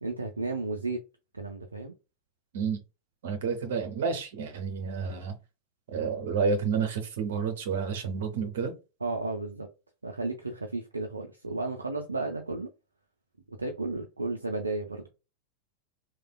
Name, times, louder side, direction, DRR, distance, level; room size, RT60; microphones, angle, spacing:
voice 1, 0.0-1.0 1.3-1.9 9.0-9.7 10.0-12.7 13.5-15.1, right 3 dB, 80° right, 0.4 m, -33 dB
voice 2, 3.2-5.4 5.9-8.7, right 5 dB, 60° right, 0.7 m, -30 dB
3.3 x 2.1 x 2.3 m
figure-of-eight pair, 90°, 0 cm